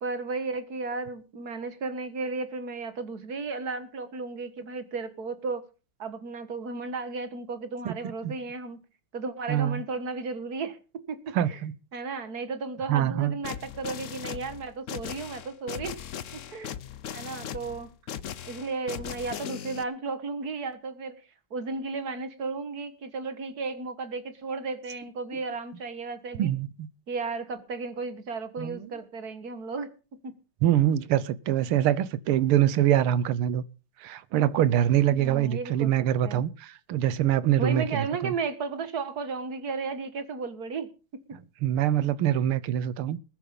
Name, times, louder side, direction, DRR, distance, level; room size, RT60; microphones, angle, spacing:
voice 1, 0.0-5.6 6.0-8.8 9.1-10.8 11.1-11.6 11.9-16.0 16.3-16.7 17.1-17.9 18.5-21.2 21.5-26.5 27.1-29.9 30.2-30.3 35.1-35.9 36.2-36.4 37.6-40.9, right 4 dB, 50° right, 1.9 m, -34 dB
voice 2, 9.5-9.8 11.3-11.7 12.9-13.4 26.4-26.9 28.6-28.9 30.6-33.6 34.0-38.3 41.6-43.2, right 11 dB, 85° right, 1.7 m, -24 dB
sound 1, 13.4-19.8, left 9 dB, 65° left, 0.7 m, -38 dB
20.5 x 8.3 x 5.2 m
omnidirectional pair, 2.3 m